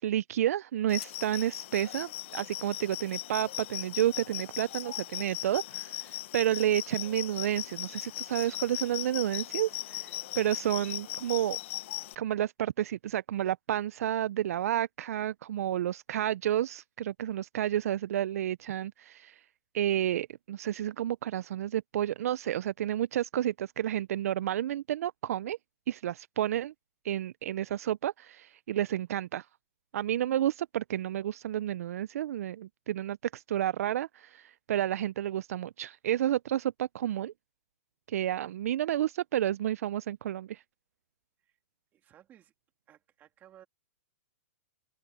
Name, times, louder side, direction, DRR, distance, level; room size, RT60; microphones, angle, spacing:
voice 1, 0.0-11.6 12.2-19.4 19.7-25.6 25.9-26.7 27.0-29.5 29.9-37.3 38.1-40.6, right 11 dB, 65° right, 0.4 m, -31 dB
sound 1, 0.9-12.1, left 15 dB, 50° left, 0.8 m, -38 dB
voice 2, 41.9-42.5 42.9-43.7, right 11 dB, 20° right, 2.8 m, -58 dB
open air
hypercardioid pair, 160°, 9 cm